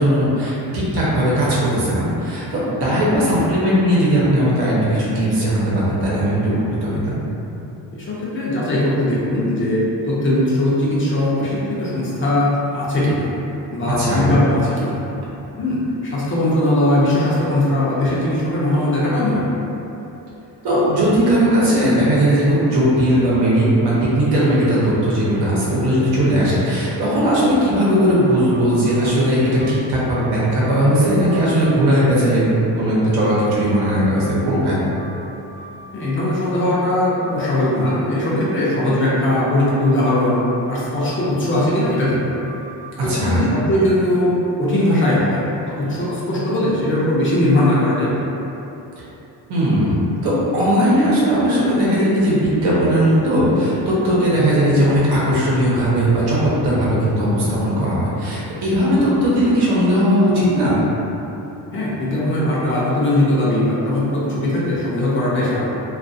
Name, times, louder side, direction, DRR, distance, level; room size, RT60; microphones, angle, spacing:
voice 1, 0.0-6.5 6.8-7.2 13.9-14.3 20.6-34.8 43.1-43.5 49.5-60.8, equal, 75° right, -7 dB, 0.9 m, -18 dB
voice 2, 7.9-13.3 13.7-15.0 15.6-19.4 35.9-40.4 40.7-42.4 43.0-48.1 61.7-65.7, left 1 dB, 30° left, -8 dB, 0.5 m, -19 dB
sound 1, 28.5-29.0 29.6-30.9 31.3-31.7 33.8-34.4 35.0-36.6 37.0-37.5 39.5-39.9 40.5-42.0 42.5-42.9, right 3 dB, 15° right, 0.4 m, -40 dB
2.4 x 2.4 x 2.6 m, 3.0 s
cardioid pair, 135°, 39 cm